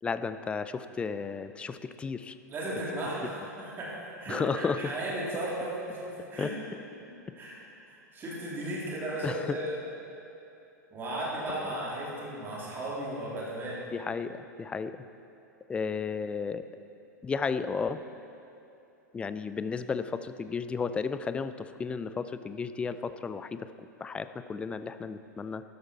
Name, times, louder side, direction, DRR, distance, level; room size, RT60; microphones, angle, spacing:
voice 1, 0.0-2.4 4.3-4.8 6.4-6.5 9.2-9.6 11.5-11.7 13.9-15.0 15.7-16.6 17.2-18.0 19.1-23.7 24.0-25.6, left 5 dB, 10° left, 12 dB, 0.4 m, -33 dB
voice 2, 2.5-6.5 7.4-7.6 7.9-9.7 10.9-13.9, right 1 dB, 20° right, -6 dB, 3.3 m, -35 dB
13.0 x 11.0 x 4.4 m, 2.8 s
figure-of-eight pair, 95°, 10 cm